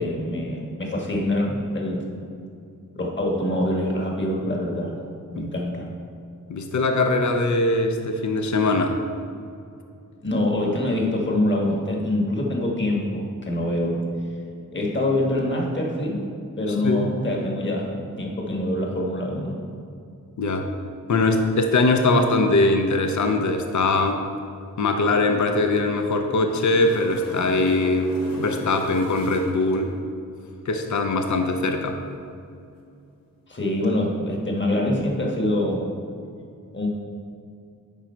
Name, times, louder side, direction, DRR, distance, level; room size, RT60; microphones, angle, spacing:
voice 1, 0.0-2.2 2.9-4.9 5.3-5.9 10.2-14.0 14.7-16.2 16.6-17.9 18.2-19.6 33.5-35.8 36.7-36.9, left 1 dB, 35° left, -1 dB, 1.6 m, -25 dB
voice 2, 6.5-9.0 16.7-17.1 20.4-20.7 21.1-24.2 24.8-29.9 30.7-32.0, left 2 dB, 60° left, 5 dB, 0.7 m, -21 dB
sound 1, 26.2-29.8 33.7-33.8, equal, 85° left, 1.3 m, -36 dB
9.0 x 5.1 x 4.4 m, 2.5 s
wide cardioid pair, 75°, 33 cm